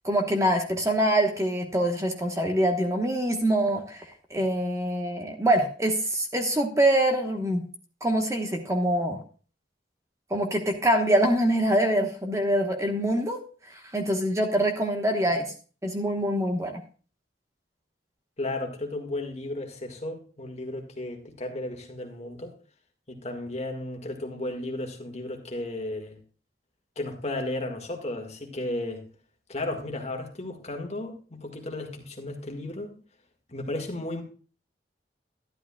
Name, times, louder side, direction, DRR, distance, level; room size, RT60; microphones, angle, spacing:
voice 1, 0.0-4.0 4.3-7.7 8.0-9.2 10.3-13.4 13.7-15.4 15.8-16.8, right 1 dB, 15° right, 1.2 m, -24 dB
voice 2, 18.4-22.5 23.1-26.2 27.0-29.1 29.5-32.9 33.5-34.2, left 2 dB, 40° left, 1.8 m, -34 dB
12.0 x 11.0 x 2.3 m
head